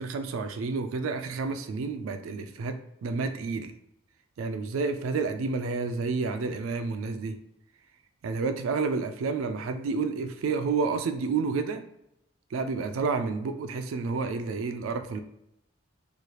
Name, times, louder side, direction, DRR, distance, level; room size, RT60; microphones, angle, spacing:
voice 1, 0.0-2.8 3.0-3.7 4.4-7.3 8.2-11.8 12.5-15.2, right 4 dB, 85° right, 8 dB, 0.3 m, -30 dB
3.1 x 2.4 x 2.9 m, 0.80 s
head